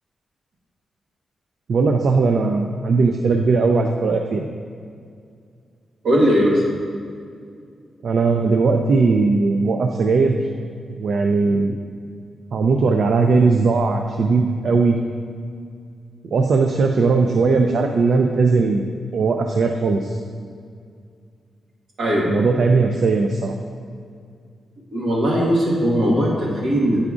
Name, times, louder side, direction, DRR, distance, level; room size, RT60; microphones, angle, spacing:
voice 1, 1.7-4.4 8.0-10.4 10.9-11.8 12.5-15.0 16.3-18.8 19.1-20.2 22.3-23.5, right 4 dB, 60° right, 4 dB, 0.3 m, -18 dB
voice 2, 6.0-6.6 22.0-22.3 24.9-27.0, equal, 80° right, -4 dB, 1.4 m, -18 dB
8.5 x 4.8 x 2.4 m, 2.3 s
wide cardioid pair, 115°, 0 cm